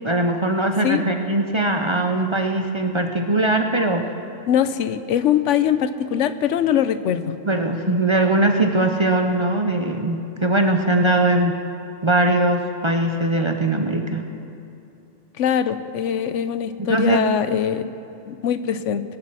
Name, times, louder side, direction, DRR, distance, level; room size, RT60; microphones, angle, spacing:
voice 1, 0.0-4.1 7.5-11.6 12.0-14.2 16.8-17.2, right 2 dB, 30° right, 4 dB, 0.6 m, -20 dB
voice 2, 4.5-7.4 15.4-17.9 18.3-19.0, left 9 dB, 85° left, 12 dB, 1.0 m, -22 dB
22.0 x 7.4 x 6.2 m, 2.7 s
omnidirectional pair, 1.2 m